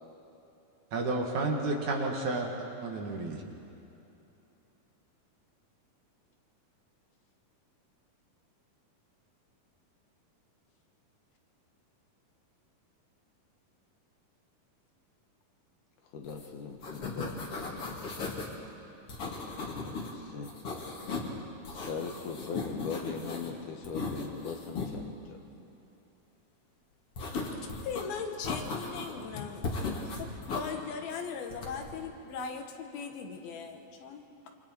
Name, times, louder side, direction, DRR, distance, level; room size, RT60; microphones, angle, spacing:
voice 1, 0.9-2.5 2.8-3.4, right 2 dB, 60° right, 0 dB, 3.0 m, -31 dB
voice 2, 16.1-17.4 19.7-20.5 21.7-25.4, left 5 dB, 65° left, 4 dB, 2.5 m, -40 dB
sound 1, 16.3-16.5 16.7-18.5 19.1-20.1 20.4-21.3 21.6-23.5 23.8-24.9 27.2-28.0 28.4-29.2 29.6-30.7 31.5-31.9, left 3 dB, 45° left, 2.9 m, -37 dB
voice 3, 27.5-34.5, left 5 dB, 80° left, 4 dB, 3.3 m, -39 dB
27.0 x 25.5 x 4.5 m, 2.9 s
omnidirectional pair, 4.3 m